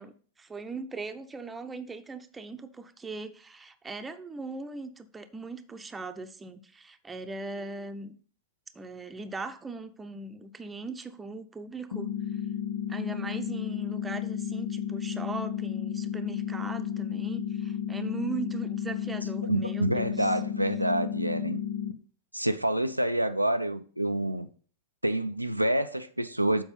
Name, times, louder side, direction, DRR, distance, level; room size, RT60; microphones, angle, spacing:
voice 1, 0.0-8.2 8.7-12.4 12.9-20.3, right 3 dB, 15° right, 0.7 m, -39 dB
sound 1, 11.9-21.9, left 9 dB, 70° left, 0.6 m, -33 dB
voice 2, 19.4-21.6 22.3-24.5 25.0-26.6, right 1 dB, 90° right, 0.4 m, -27 dB
7.1 x 4.8 x 5.5 m
figure-of-eight pair, 90°, 0 cm